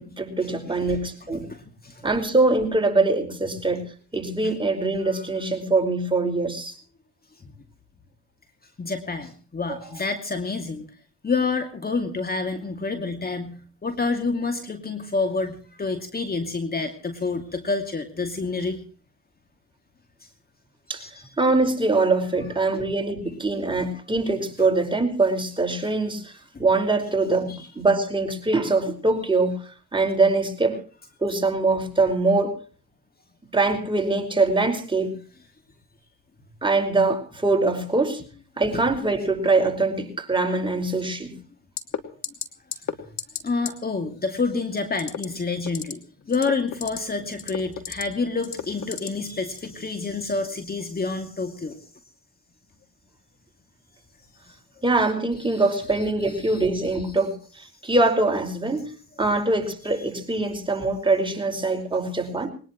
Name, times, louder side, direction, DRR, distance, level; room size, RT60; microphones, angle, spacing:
voice 1, 0.0-1.5 2.0-3.9 4.1-6.8 9.7-9.8 20.9-21.1 21.4-26.3 26.6-29.6 29.9-30.8 31.2-32.6 33.5-35.2 36.6-38.2 38.6-41.3 54.8-58.9 59.2-62.5, right 3 dB, 15° right, 3 dB, 5.1 m, -23 dB
voice 2, 1.3-2.0 5.0-5.2 8.8-10.8 11.2-18.8 20.9-21.2 22.4-22.5 27.5-27.7 38.7-38.8 42.9-43.0 43.4-46.0 46.3-51.8 54.5-54.6 55.5-55.6 56.2-56.7, left 4 dB, 25° left, 6 dB, 2.5 m, -28 dB
sound 1, 41.8-42.0 42.2-42.5 42.7-42.9 43.2-43.4 43.7-43.8 45.0-45.3 45.6-45.9 46.3-47.0 47.4-48.0 48.4-49.1 49.5-49.7, left 9 dB, 55° left, 2.7 m, -30 dB
21.5 x 19.5 x 3.1 m, 0.39 s
hypercardioid pair, 65°, 34 cm